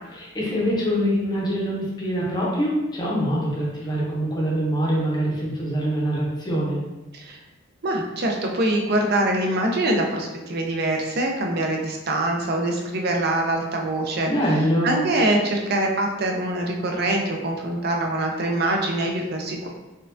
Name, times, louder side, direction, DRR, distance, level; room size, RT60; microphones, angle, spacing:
voice 1, 0.1-6.8 14.2-14.9, equal, 20° left, -4 dB, 0.7 m, -24 dB
voice 2, 7.8-14.3 14.8-19.7, right 1 dB, 45° right, 1 dB, 0.5 m, -24 dB
4.3 x 2.3 x 2.5 m, 1.0 s
head